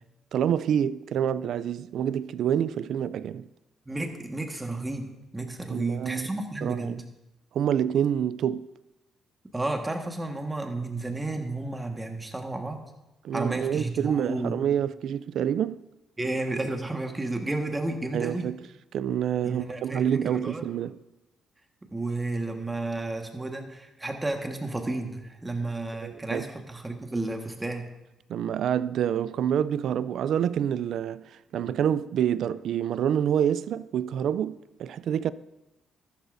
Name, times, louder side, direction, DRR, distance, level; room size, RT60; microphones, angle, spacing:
voice 1, 0.3-3.5 5.7-6.3 6.6-7.0 7.5-8.7 13.2-15.8 18.1-18.6 18.9-21.0 26.0-26.4 28.3-35.3, right 9 dB, 70° right, 0.3 m, -27 dB
voice 2, 3.9-7.0 9.5-12.9 13.3-14.6 16.2-18.5 19.4-20.7 21.9-27.9, right 2 dB, 15° right, 1.5 m, -32 dB
13.5 x 11.5 x 2.6 m
cardioid pair, 90°, 0 cm